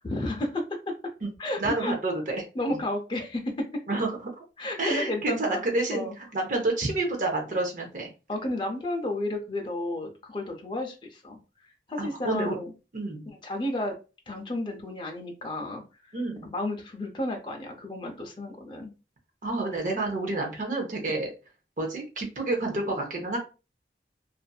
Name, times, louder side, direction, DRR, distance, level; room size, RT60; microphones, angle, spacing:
voice 1, 0.0-0.9 1.4-1.9 2.5-3.7 4.6-5.6 5.9-6.1 8.3-11.4 11.9-12.7 13.3-13.9 14.3-15.8 16.1-18.9 21.1-21.2, left 1 dB, 25° left, 2 dB, 0.5 m, -32 dB
voice 2, 1.6-2.8 3.9-4.2 4.8-8.1 12.0-12.6 12.9-13.2 16.1-16.5 19.4-21.3 21.8-23.4, right 2 dB, 45° right, 2 dB, 0.6 m, -29 dB
2.5 x 2.5 x 2.2 m, 0.31 s
head